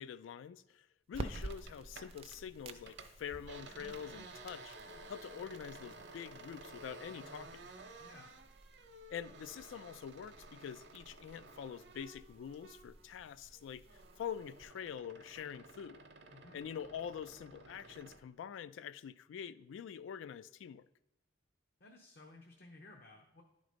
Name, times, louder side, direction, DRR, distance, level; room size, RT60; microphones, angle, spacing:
voice 1, 0.0-4.8 5.1-7.6 9.1-16.1 16.5-20.9, left 8 dB, 85° left, 0.3 m, -46 dB
sound 1, 1.1-14.6, right 2 dB, 30° right, 0.4 m, -52 dB
sound 2, 1.3-2.4 2.7-13.1 13.4-18.2, right 2 dB, 60° right, 0.7 m, -54 dB
voice 2, 8.0-8.3 16.3-16.7 21.8-23.4, left 2 dB, 55° left, 0.7 m, -57 dB
10.5 x 3.9 x 5.0 m
head